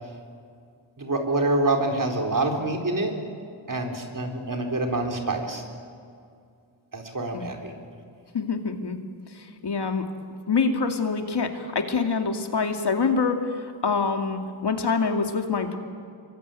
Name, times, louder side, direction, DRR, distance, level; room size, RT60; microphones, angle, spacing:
voice 1, 1.0-3.1 3.7-5.6 6.9-7.7, right 2 dB, 45° right, 2 dB, 4.2 m, -26 dB
voice 2, 8.3-9.0 9.3-10.1 10.5-15.8, left 4 dB, 55° left, 5 dB, 2.4 m, -25 dB
27.5 x 23.5 x 9.2 m, 2.4 s
wide cardioid pair, 110°, 46 cm